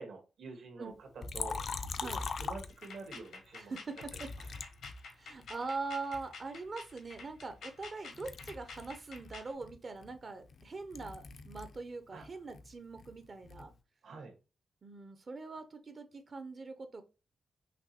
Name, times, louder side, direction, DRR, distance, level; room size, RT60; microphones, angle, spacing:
voice 1, 0.0-2.1 2.4-3.7 4.1-4.5 12.1-12.2 14.0-14.3, right 4 dB, 75° right, 2 dB, 1.5 m, -47 dB
Liquid, 1.2-3.2 4.0-5.6 6.1-7.9 8.1-11.8 12.1-13.7, left 4 dB, 50° left, 0.4 m, -42 dB
sound 1, 2.7-9.5, left 4 dB, 90° left, 1.3 m, -49 dB
voice 2, 3.5-4.3 5.1-13.7 14.8-17.0, right 3 dB, 35° right, 8 dB, 0.5 m, -42 dB
5.9 x 3.0 x 2.8 m, 0.30 s
wide cardioid pair, 165°, 0 cm